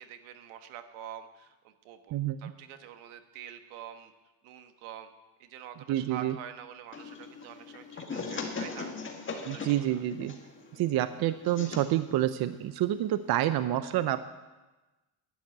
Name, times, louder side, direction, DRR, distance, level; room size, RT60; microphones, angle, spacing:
voice 1, 0.0-4.1 4.4-5.1 5.4-8.9 9.4-10.0, right 10 dB, 80° right, 8 dB, 1.4 m, -46 dB
voice 2, 2.1-2.5 5.9-6.4 9.5-10.4 10.7-14.2, right 13 dB, 50° right, 12 dB, 0.7 m, -28 dB
sound 1, 6.9-13.6, left 4 dB, 25° left, 1.8 m, -40 dB
11.0 x 10.5 x 7.9 m, 1.1 s
cardioid pair, 120°, 48 cm